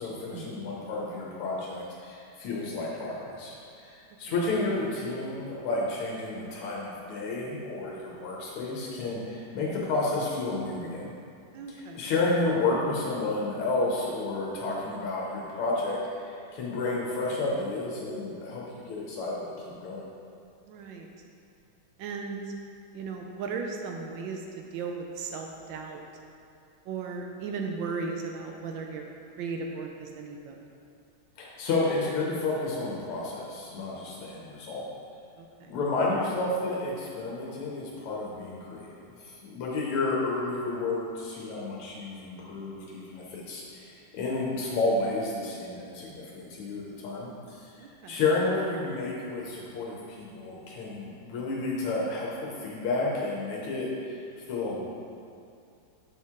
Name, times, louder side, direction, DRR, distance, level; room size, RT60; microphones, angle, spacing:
voice 1, 0.0-11.1 11.7-20.0 31.4-34.9 35.7-54.8, left 2 dB, 85° left, -4 dB, 1.7 m, -31 dB
voice 2, 11.5-12.0 20.7-21.1 22.0-22.6 22.9-26.0 26.9-30.6 35.4-35.7 47.8-48.2, right 4 dB, 75° right, 2 dB, 1.1 m, -36 dB
6.1 x 4.5 x 3.6 m, 2.4 s
omnidirectional pair, 2.4 m